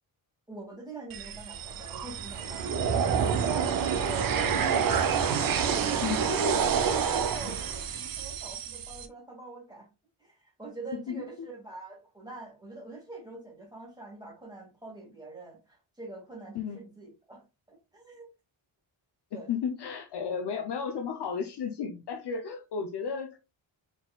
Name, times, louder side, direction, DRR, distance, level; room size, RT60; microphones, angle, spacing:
voice 1, 0.5-4.9 5.3-9.9 10.2-18.3 19.3-19.5, right 2 dB, 10° right, 1.8 m, -44 dB
sound 1, 1.1-9.1, right 7 dB, 45° right, 0.5 m, -28 dB
voice 2, 6.0-6.6 10.9-11.2 16.5-16.8 19.3-23.4, left 6 dB, 55° left, 0.6 m, -33 dB
4.2 x 4.1 x 2.2 m
wide cardioid pair, 165°, 49 cm